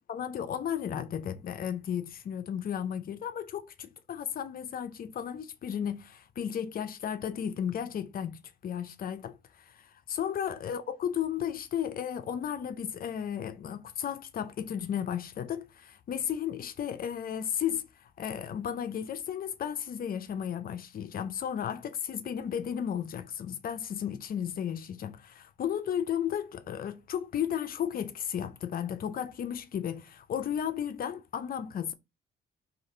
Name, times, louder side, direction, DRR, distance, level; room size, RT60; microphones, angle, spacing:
voice 1, 0.1-17.9 18.2-31.9, left 9 dB, 50° left, 0.4 m, -34 dB
2.7 x 2.4 x 3.1 m
cardioid pair, 90°, 20 cm